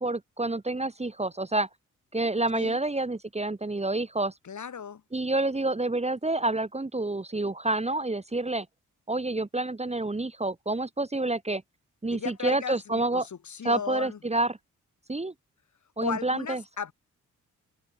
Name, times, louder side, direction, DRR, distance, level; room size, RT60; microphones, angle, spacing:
voice 1, 0.0-1.7 2.1-4.3 5.1-8.7 9.1-11.6 12.0-13.3 13.6-14.6 15.1-15.3 16.0-16.6, right 2 dB, 20° right, 1.9 m, -28 dB
voice 2, 4.4-5.0 12.1-14.2 16.0-16.9, left 7 dB, 60° left, 6.0 m, -36 dB
open air
cardioid pair, 55°, 32 cm